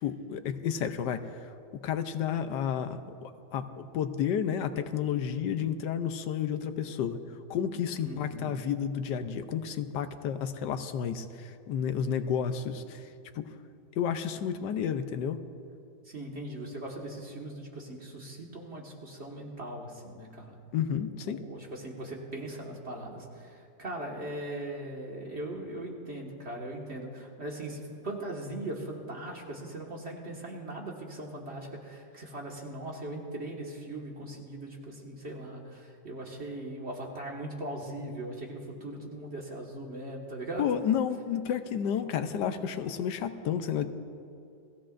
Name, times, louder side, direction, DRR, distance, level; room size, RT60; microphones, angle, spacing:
voice 1, 0.0-1.4 1.8-7.2 7.5-13.1 13.3-13.5 14.0-15.4 20.7-21.4 40.6-43.9, left 8 dB, 85° left, 9 dB, 1.3 m, -31 dB
voice 2, 8.0-8.5 16.1-20.6 21.2-40.6, right 1 dB, 40° right, -1 dB, 1.9 m, -39 dB
28.0 x 16.0 x 2.6 m, 2.5 s
omnidirectional pair, 1.8 m